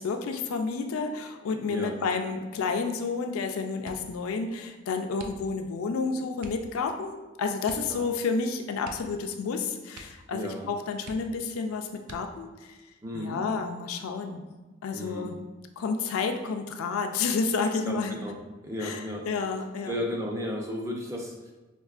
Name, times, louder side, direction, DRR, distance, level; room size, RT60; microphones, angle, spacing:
voice 1, 0.0-12.5 13.1-14.4 14.8-15.3 15.8-18.2 18.8-20.0, left 4 dB, 80° left, 5 dB, 0.3 m, -30 dB
sound 1, 3.8-4.2 5.1-5.8 6.4-6.7 7.6-8.3 8.8-9.5 9.9-10.3 10.6-10.7 11.0-11.5 12.0-12.6 13.3-13.9 14.3-14.7, right 3 dB, 90° right, 0.4 m, -47 dB
voice 2, 10.3-10.7 13.0-13.4 14.9-15.3 17.8-17.9 18.2-18.3 18.6-19.2 19.8-21.5, left 1 dB, 15° right, -1 dB, 0.4 m, -34 dB
4.5 x 2.3 x 2.4 m, 1.2 s
head